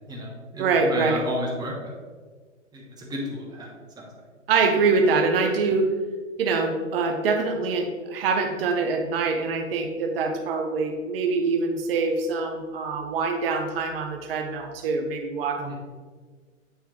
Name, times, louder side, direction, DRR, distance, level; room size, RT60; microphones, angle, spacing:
voice 1, 0.1-2.0 2.7-4.0 15.6-15.8, equal, 10° right, -2 dB, 1.1 m, -33 dB
voice 2, 0.6-1.2 4.5-5.9 6.4-15.8, right 4 dB, 50° right, 5 dB, 0.8 m, -24 dB
9.1 x 3.5 x 3.1 m, 1.4 s
hypercardioid pair, 130°, 38 cm